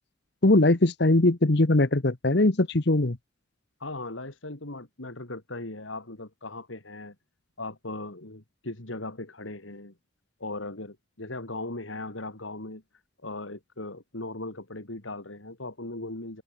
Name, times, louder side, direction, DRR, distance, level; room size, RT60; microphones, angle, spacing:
voice 1, 0.4-3.2, left 2 dB, 55° left, 1.2 m, -21 dB
voice 2, 3.8-7.1 7.6-9.9 10.4-12.8 13.2-16.4, left 2 dB, 80° left, 3.2 m, -38 dB
head